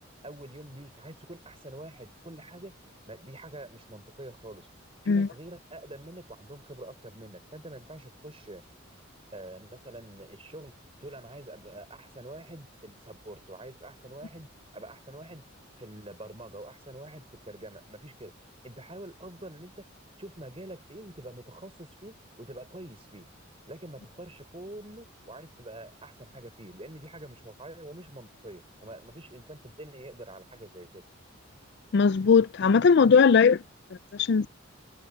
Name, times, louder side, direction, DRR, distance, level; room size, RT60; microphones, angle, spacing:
voice 1, 0.0-2.7 3.1-4.7 5.0-8.6 8.9-9.0 9.3-10.7 11.0-15.4 15.8-18.3 18.6-19.8 20.2-23.3 23.7-31.0, right 1 dB, 30° right, 5.5 m, -46 dB
voice 2, 31.9-33.6 34.1-34.5, left 5 dB, 55° left, 0.4 m, -19 dB
head